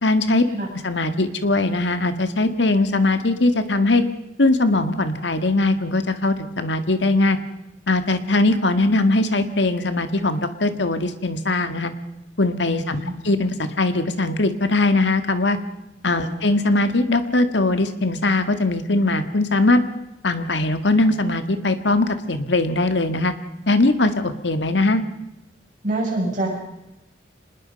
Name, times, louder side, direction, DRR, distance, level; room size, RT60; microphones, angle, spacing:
voice 1, 0.0-0.5 0.8-4.0 4.4-7.4 7.9-11.9 12.4-15.6 16.0-19.8 20.2-23.3 23.7-25.0, left 2 dB, 75° left, 9 dB, 1.8 m, -20 dB
voice 2, 25.8-26.5, right 2 dB, 45° right, -1 dB, 7.4 m, -25 dB
26.0 x 20.5 x 5.3 m, 0.92 s
head